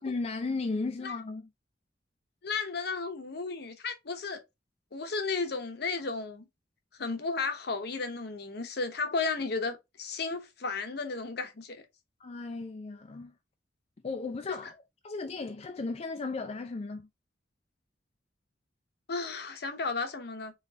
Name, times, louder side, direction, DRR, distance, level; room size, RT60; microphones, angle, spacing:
voice 1, 0.0-1.5 12.2-13.3 14.0-14.7 15.0-17.1, left 3 dB, 35° left, 0.4 m, -35 dB
voice 2, 2.4-4.4 4.9-6.5 7.0-11.8 19.1-20.5, left 4 dB, 65° left, 0.8 m, -34 dB
4.1 x 3.2 x 2.3 m
head